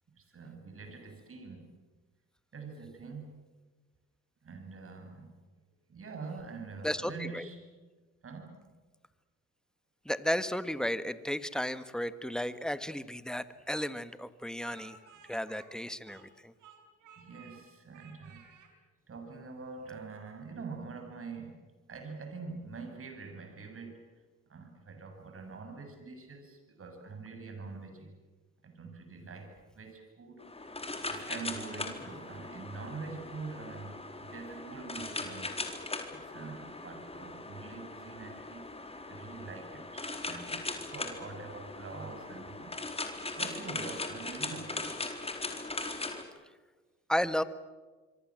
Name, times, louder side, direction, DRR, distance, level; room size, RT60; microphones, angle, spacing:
voice 1, 0.2-1.7 2.5-3.3 4.4-5.3 5.9-7.7 8.2-8.7 17.2-18.5 19.1-24.1 24.5-28.1 28.6-30.8 31.1-35.5 36.1-38.7 39.1-42.8 43.4-45.1, right 4 dB, 45° right, 5 dB, 7.8 m, -45 dB
voice 2, 6.8-7.5 10.0-15.0 15.3-16.5 47.1-47.4, equal, ahead, 12 dB, 1.5 m, -33 dB
Speech, 13.7-16.3 16.6-17.6 17.9-18.7, right 7 dB, 80° right, 5.4 m, -56 dB
sound 1, 30.4-46.2, left 2 dB, 20° left, 4.1 m, -40 dB
26.0 x 24.5 x 7.7 m, 1.3 s
cardioid pair, 90°, 30 cm